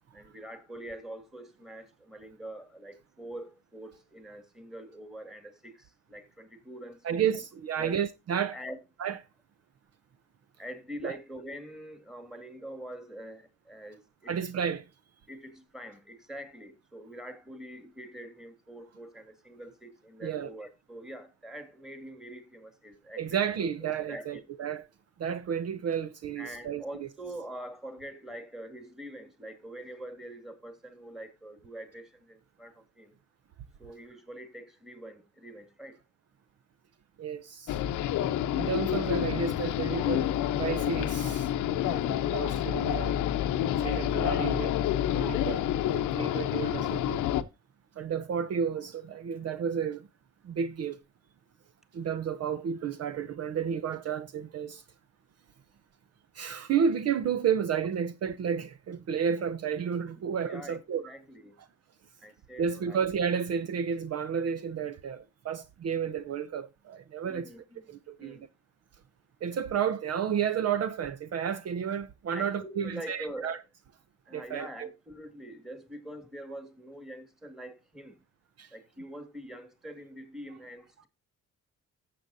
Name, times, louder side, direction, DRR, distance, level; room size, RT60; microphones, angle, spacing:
voice 1, 0.1-7.2 7.7-8.0 8.5-8.8 10.6-14.4 15.3-23.4 23.8-24.4 26.4-33.1 33.8-36.0 60.5-61.5 62.2-63.0 67.3-67.8 68.2-68.4 72.3-73.6 74.3-78.2 78.7-81.1, right 1 dB, ahead, 2.1 m, -44 dB
voice 2, 7.0-8.6 9.0-9.2 11.0-11.2 14.3-14.9 20.2-20.5 23.2-24.8 25.2-27.1 37.2-37.8 38.6-41.5 41.8-43.2 43.8-44.7 45.1-45.6 45.9-47.2 48.0-50.1 50.4-51.0 51.9-54.8 56.3-61.0 62.6-67.5 67.9-68.5 69.4-73.6 74.3-74.9 78.6-78.7, right 7 dB, 55° right, 0.7 m, -31 dB
sound 1, 37.7-47.4, left 11 dB, 80° left, 0.8 m, -28 dB
14.5 x 7.7 x 2.6 m
cardioid pair, 90°, 30 cm